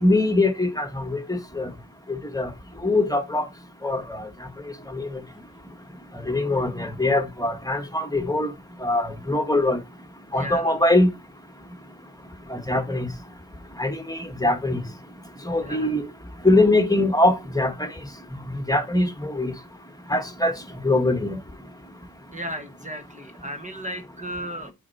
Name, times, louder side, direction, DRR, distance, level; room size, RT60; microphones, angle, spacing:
voice 1, 0.0-1.7 2.1-2.5 2.8-3.5 3.8-4.3 4.9-5.2 6.3-8.5 8.8-9.8 10.3-11.1 12.5-13.1 13.8-14.8 15.5-16.1 16.4-17.9 18.4-19.5 20.1-20.5 20.8-21.4, left 2 dB, 10° left, 1.3 m, -22 dB
voice 2, 10.3-10.8 15.6-16.0 22.3-24.7, equal, 20° right, 0.9 m, -35 dB
8.7 x 4.4 x 4.1 m
wide cardioid pair, 115°, 36 cm